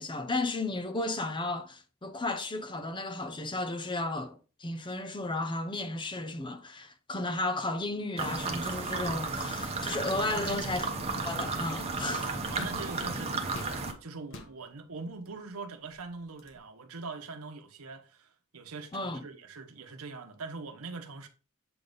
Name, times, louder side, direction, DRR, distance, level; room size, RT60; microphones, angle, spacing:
voice 1, 0.0-10.9 11.2-12.6 18.9-19.2, left 2 dB, 20° left, 0.7 m, -34 dB
sound 1, 8.2-13.9, right 3 dB, 30° right, 1.0 m, -33 dB
voice 2, 10.2-10.6 12.0-21.3, right 3 dB, 80° right, 1.0 m, -42 dB
sound 2, 12.6-13.8 14.2-14.6 15.3-15.4 15.8-16.6, left 1 dB, 65° left, 1.2 m, -47 dB
7.8 x 3.5 x 3.9 m
head